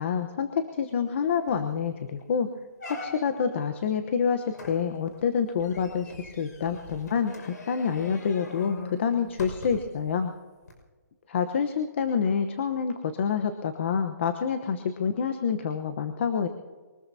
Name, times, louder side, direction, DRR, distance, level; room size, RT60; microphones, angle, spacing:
voice 1, 0.0-2.5 2.9-10.3 11.3-16.5, left 6 dB, 40° left, 7 dB, 1.0 m, -27 dB
sound 1, 1.0-1.1 1.5-1.8 2.2-2.3 2.8-3.5 4.5-10.0 10.6-10.7, left 3 dB, 65° left, 5.8 m, -42 dB
23.5 x 20.0 x 2.8 m, 1.4 s
hypercardioid pair, 165°, 10 cm